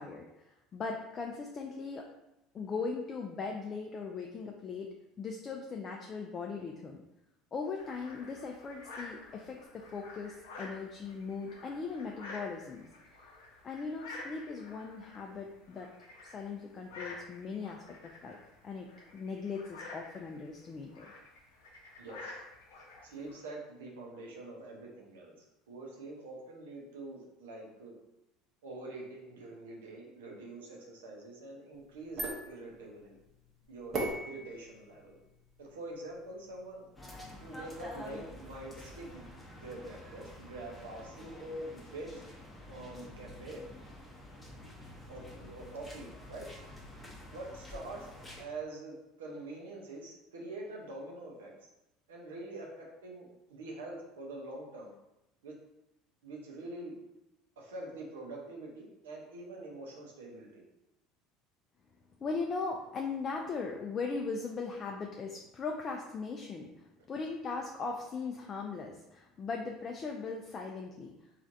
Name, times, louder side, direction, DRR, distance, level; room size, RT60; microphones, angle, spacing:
voice 1, 0.0-2.1 2.5-7.0 7.5-12.8 13.6-15.9 16.2-18.4 18.6-18.9 19.1-21.1 22.7-23.1 62.2-71.1, left 4 dB, 35° left, 1 dB, 0.3 m, -39 dB
sound 1, 7.8-23.4, left 2 dB, 85° left, 0.5 m, -50 dB
voice 2, 22.0-22.4 23.0-28.0 28.6-33.2 33.7-34.0 34.2-35.2 35.6-36.9 37.4-39.3 39.5-42.2 42.7-43.6 45.1-46.5 47.3-51.7 52.1-54.9 55.4-55.5 56.2-57.0 57.6-60.7, right 2 dB, 90° right, -1 dB, 0.6 m, -45 dB
sound 2, 31.7-37.9, right 2 dB, 45° right, 0.8 m, -42 dB
sound 3, 37.0-48.4, left 1 dB, 10° left, 0.7 m, -49 dB
3.1 x 2.4 x 2.6 m, 0.90 s
hypercardioid pair, 85°, 0 cm